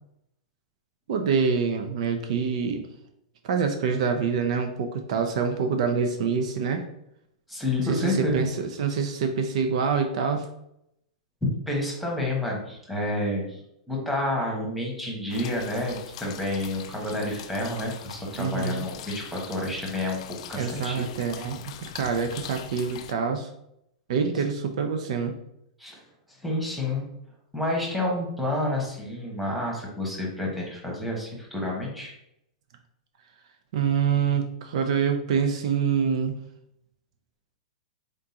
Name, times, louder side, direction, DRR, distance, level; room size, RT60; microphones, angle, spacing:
voice 1, 1.1-2.8 3.4-6.8 7.9-10.5 18.4-18.9 20.6-23.5 24.1-25.3 33.7-36.3, right 6 dB, 65° right, 6 dB, 0.5 m, -26 dB
voice 2, 7.5-8.4 11.7-13.6 13.9-21.1 25.8-26.0 26.4-27.1 27.5-32.1, left 1 dB, ahead, -3 dB, 1.2 m, -29 dB
sound 1, 15.3-23.1, left 10 dB, 60° left, 0.3 m, -42 dB
3.8 x 3.6 x 2.8 m, 0.78 s
hypercardioid pair, 135°, 4 cm